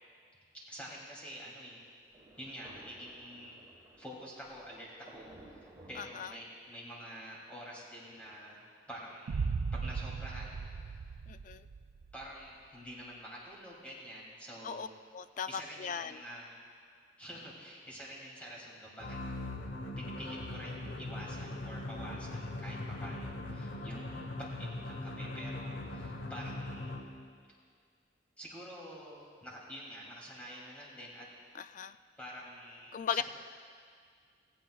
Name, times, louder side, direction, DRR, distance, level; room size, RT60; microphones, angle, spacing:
voice 1, 0.5-1.8 2.4-3.6 4.0-10.6 12.1-14.9 15.5-16.6 17.2-19.2 20.0-26.9 28.4-31.3 32.2-33.2, equal, 5° left, -5 dB, 2.8 m, -47 dB
Thunder, 2.1-6.9, right 1 dB, 15° right, 2.0 m, -57 dB
voice 2, 6.0-6.3 11.3-11.7 14.6-14.9 15.1-16.2 31.5-32.0 32.9-33.2, left 7 dB, 45° left, 12 dB, 0.3 m, -37 dB
Boom, 9.3-12.2, right 5 dB, 75° right, 0.4 m, -37 dB
sound 1, 19.0-27.2, left 2 dB, 75° left, 1.0 m, -40 dB
16.5 x 16.5 x 2.4 m, 2.1 s
head